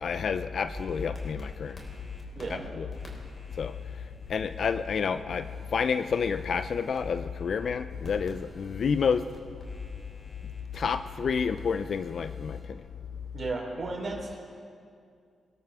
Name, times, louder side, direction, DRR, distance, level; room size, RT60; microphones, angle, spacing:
voice 1, 0.0-1.8 2.5-2.9 3.6-3.7 4.3-5.5 5.7-9.2 10.7-12.6, left 6 dB, 65° left, 11 dB, 0.4 m, -29 dB
sound 1, 0.7-12.6, left 3 dB, 45° left, 3.9 m, -46 dB
voice 2, 13.3-14.4, right 3 dB, 50° right, -1 dB, 3.9 m, -34 dB
24.5 x 13.0 x 3.6 m, 2.3 s
cardioid pair, 70°, 0 cm